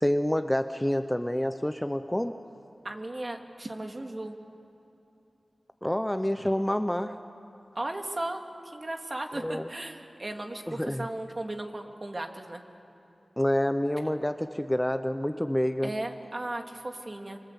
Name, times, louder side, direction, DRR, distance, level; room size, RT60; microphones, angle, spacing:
voice 1, 0.0-2.4 5.8-7.2 9.4-9.7 10.7-11.1 13.4-16.0, equal, 10° left, 9 dB, 0.7 m, -28 dB
voice 2, 2.8-4.4 7.7-12.6 15.8-17.4, right 1 dB, 40° right, 4 dB, 2.3 m, -36 dB
26.0 x 24.5 x 8.3 m, 2.9 s
wide cardioid pair, 75°, 0 cm